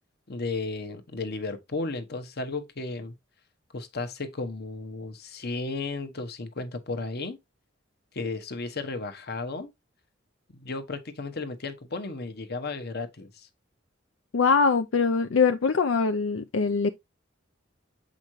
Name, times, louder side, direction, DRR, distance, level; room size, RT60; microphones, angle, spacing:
voice 1, 0.3-3.1 3.7-7.4 8.1-9.7 10.5-13.5, left 3 dB, 55° left, 1.0 m, -34 dB
voice 2, 14.3-16.9, left 5 dB, 75° left, 0.5 m, -23 dB
7.6 x 5.1 x 3.1 m
head